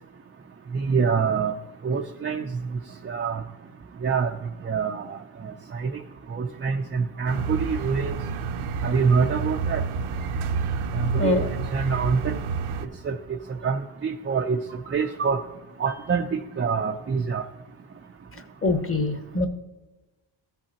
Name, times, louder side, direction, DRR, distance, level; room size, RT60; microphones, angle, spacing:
voice 1, 0.7-1.5 1.8-2.5 3.0-3.4 4.0-4.3 4.6-5.2 5.7-6.0 6.3-8.2 8.8-9.8 10.9-11.4 11.7-12.4 13.0-13.2 13.6-15.4 15.8-17.4, right 5 dB, 25° right, 2 dB, 0.4 m, -25 dB
sound 1, 7.3-12.9, right 5 dB, 75° right, 0.7 m, -29 dB
voice 2, 11.1-11.5 18.3-19.5, left 2 dB, 25° left, 7 dB, 1.0 m, -25 dB
14.5 x 5.6 x 2.9 m, 1.1 s
cardioid pair, 125°, 50 cm